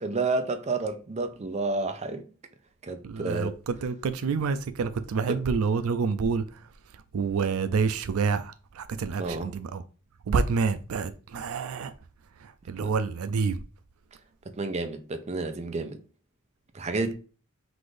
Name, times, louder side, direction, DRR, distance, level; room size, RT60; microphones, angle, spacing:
voice 1, 0.0-2.3 2.8-3.5 5.3-5.4 9.2-9.5 12.8-12.9 14.5-16.0 16.7-17.1, right 3 dB, 30° right, 0.5 m, -30 dB
voice 2, 3.0-6.4 7.1-9.8 10.3-11.9 12.4-13.6, right 5 dB, 85° right, 0.4 m, -28 dB
4.0 x 2.6 x 4.8 m
head